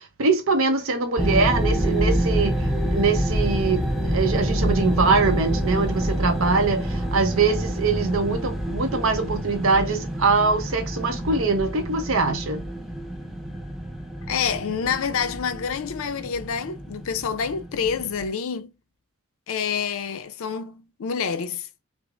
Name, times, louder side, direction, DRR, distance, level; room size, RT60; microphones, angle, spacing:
voice 1, 0.0-12.6, right 4 dB, 75° right, 0.7 m, -23 dB
sound 1, 1.2-18.3, equal, ahead, 0.4 m, -27 dB
voice 2, 14.3-18.7 19.5-21.7, left 6 dB, 75° left, 0.4 m, -27 dB
4.9 x 2.0 x 2.4 m
head